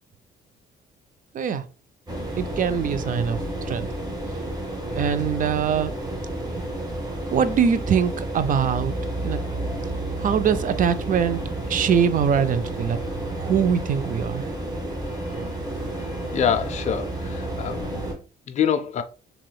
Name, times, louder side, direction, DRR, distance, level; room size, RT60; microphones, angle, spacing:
sound 1, 2.1-18.1, right 1 dB, 20° right, 1.1 m, -30 dB
voice 1, 2.4-3.4 3.7-3.9 5.0-6.0 7.3-8.9 9.2-9.4 10.2-11.4 11.7-13.0 13.4-14.5, right 7 dB, 45° right, 0.4 m, -22 dB
voice 2, 16.3-18.0 18.5-19.0, left 8 dB, 35° left, 0.3 m, -25 dB
3.1 x 2.9 x 2.2 m
cardioid pair, 90°, 20 cm